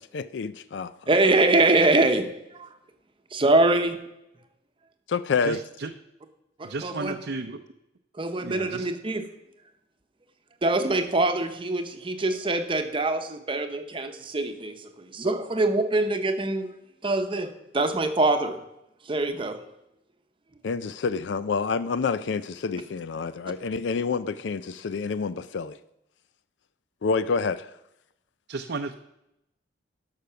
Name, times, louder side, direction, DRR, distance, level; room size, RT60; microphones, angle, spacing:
voice 1, 0.0-0.9 5.1-5.6 20.6-25.8 27.0-27.7, left 5 dB, 75° left, 14 dB, 0.4 m, -28 dB
voice 2, 1.1-2.3 2.5-2.7 3.3-4.0 6.6-7.2 8.2-9.2 10.6-16.7 17.0-18.6 19.1-19.6, right 2 dB, 30° right, 7 dB, 0.8 m, -24 dB
voice 3, 5.4-5.9 6.6-7.6 8.4-8.9 28.5-28.9, right 3 dB, 70° right, 5 dB, 0.6 m, -33 dB
12.0 x 6.5 x 5.7 m, 0.85 s
head